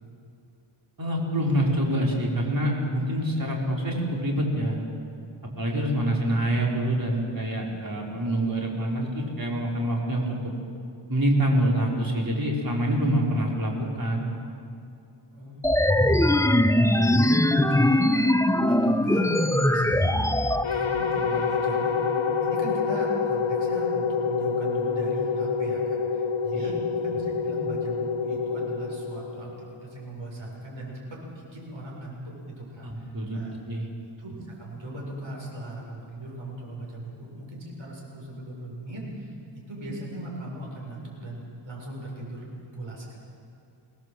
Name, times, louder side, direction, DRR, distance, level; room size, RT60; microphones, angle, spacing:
voice 1, 1.0-4.8 5.6-10.5 11.1-14.3 26.5-26.7 32.8-33.4 33.7-33.9, right 1 dB, 45° right, -2 dB, 4.8 m, -26 dB
voice 2, 15.3-20.4 20.7-33.5 34.2-43.2, right 1 dB, 65° right, -3 dB, 7.6 m, -38 dB
sound 1, 15.6-20.6, left 1 dB, 5° left, 0.7 m, -21 dB
sound 2, 20.6-29.9, left 5 dB, 70° left, 2.1 m, -27 dB
24.5 x 19.0 x 7.9 m, 2.5 s
wide cardioid pair, 85°, 48 cm